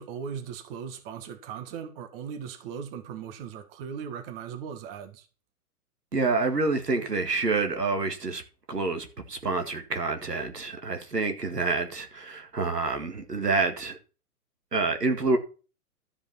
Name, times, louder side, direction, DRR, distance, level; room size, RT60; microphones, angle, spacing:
voice 1, 0.0-5.3, right 7 dB, 35° right, 1.6 m, -38 dB
voice 2, 6.1-8.4 8.7-14.0 14.7-15.4, right 3 dB, 85° right, 2.1 m, -27 dB
12.5 x 5.1 x 5.6 m
figure-of-eight pair, 115°, 46 cm